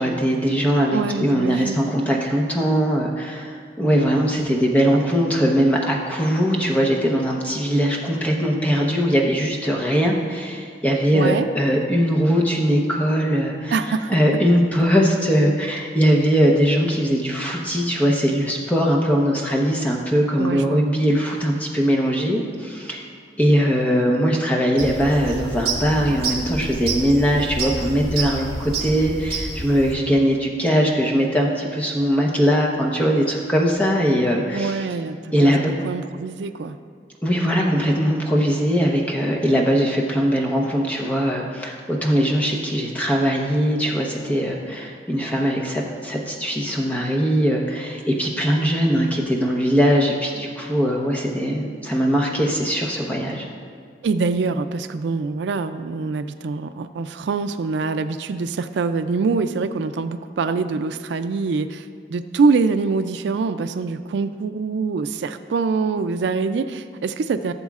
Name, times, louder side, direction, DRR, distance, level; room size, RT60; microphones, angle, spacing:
voice 1, 0.0-13.8 14.1-23.0 23.4-34.8 35.3-35.7 37.2-53.5, equal, 10° left, -2 dB, 0.9 m, -20 dB
voice 2, 0.9-1.8 4.9-5.0 11.1-11.5 13.7-14.2 20.4-20.8 34.5-36.8 54.0-67.5, right 4 dB, 75° right, 10 dB, 0.4 m, -24 dB
sound 1, 24.8-29.9, right 3 dB, 60° right, 1.8 m, -29 dB
15.5 x 7.1 x 2.4 m, 2.2 s
head